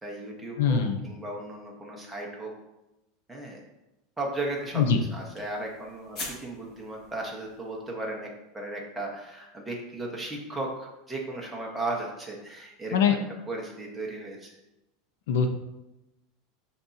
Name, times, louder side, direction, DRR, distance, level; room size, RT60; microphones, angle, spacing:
voice 1, 0.0-2.5 3.3-3.6 4.2-4.8 5.1-8.3 8.5-13.2 13.5-14.6, right 2 dB, 5° right, -2 dB, 1.2 m, -36 dB
voice 2, 0.6-1.0 4.7-5.0 12.9-13.1 15.3-15.5, left 6 dB, 75° left, 6 dB, 0.8 m, -22 dB
sound 1, 4.4-7.9, left 2 dB, 30° left, 1.8 m, -44 dB
12.0 x 4.3 x 2.8 m, 0.93 s
supercardioid pair, 175°, 0 cm